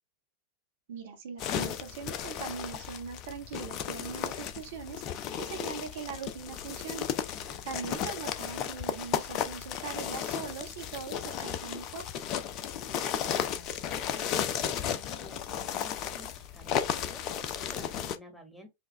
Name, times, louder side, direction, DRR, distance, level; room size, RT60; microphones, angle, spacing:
voice 1, 0.9-7.1 7.6-12.1, right 6 dB, 55° right, 1.0 m, -41 dB
sound 1, 1.4-18.2, left 9 dB, 40° left, 0.5 m, -34 dB
voice 2, 7.3-7.7 12.9-18.7, equal, 5° left, 1.4 m, -52 dB
5.1 x 2.3 x 3.2 m
figure-of-eight pair, 90°, 0 cm